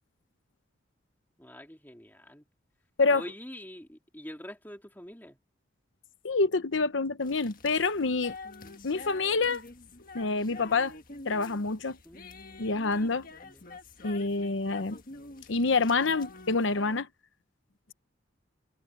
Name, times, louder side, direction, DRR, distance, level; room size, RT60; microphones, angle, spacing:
voice 1, 1.4-2.4 3.1-5.4 8.6-8.8 12.0-12.2 13.4-13.6, left 1 dB, 10° left, 2.8 m, -45 dB
voice 2, 6.2-8.4 8.8-9.6 10.1-10.9 11.2-12.0 12.6-13.3 14.0-15.0 15.5-17.1, left 3 dB, 75° left, 0.9 m, -27 dB
sound 1, 7.2-17.0, left 3 dB, 45° left, 1.6 m, -47 dB
head